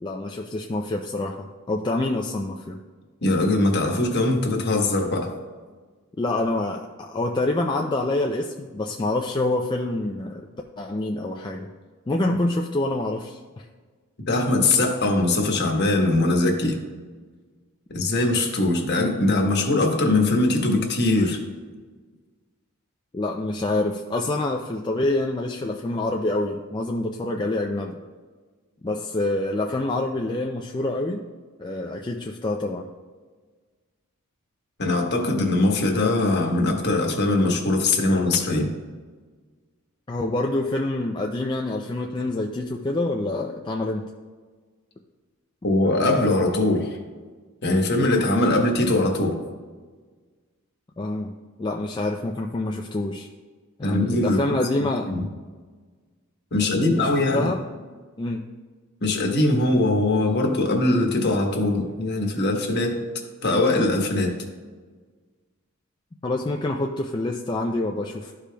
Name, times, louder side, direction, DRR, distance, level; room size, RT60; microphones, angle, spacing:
voice 1, 0.0-2.8 6.2-10.5 10.8-11.7 12.1-13.7 23.1-28.0 28.8-31.2 31.6-32.9 40.1-44.1 51.0-53.3 53.8-55.1 56.8-57.6 58.2-58.5 66.2-68.3, left 2 dB, 20° left, 1 dB, 0.3 m, -26 dB
voice 2, 3.2-5.3 14.3-16.8 17.9-21.4 34.8-38.7 45.6-47.0 47.6-49.4 53.8-54.4 55.1-55.3 56.5-57.5 59.0-63.0 63.4-64.4, left 2 dB, 50° left, 1 dB, 1.1 m, -21 dB
13.0 x 5.0 x 2.3 m, 1.4 s
head